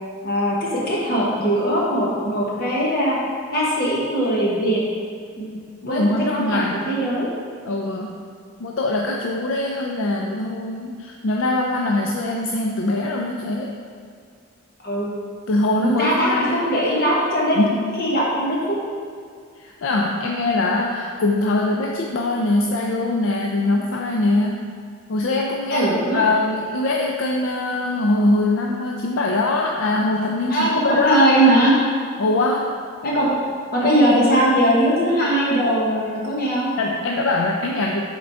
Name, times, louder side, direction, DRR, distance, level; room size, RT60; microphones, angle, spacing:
voice 1, 0.2-3.2 3.5-4.8 5.4-5.6 5.8-7.3 14.8-15.1 15.7-17.6 18.0-18.8 25.7-26.2 30.5-31.8 33.0-33.3 33.7-36.7, right 1 dB, 45° left, -5 dB, 1.3 m, -20 dB
voice 2, 5.8-6.8 7.7-8.2 8.6-13.7 15.5-16.7 17.6-17.8 19.6-24.7 25.1-31.2 32.2-32.7 33.8-33.9 34.3-34.5 36.8-38.0, left 2 dB, 70° left, 0 dB, 0.4 m, -22 dB
7.5 x 3.9 x 3.5 m, 2.1 s
head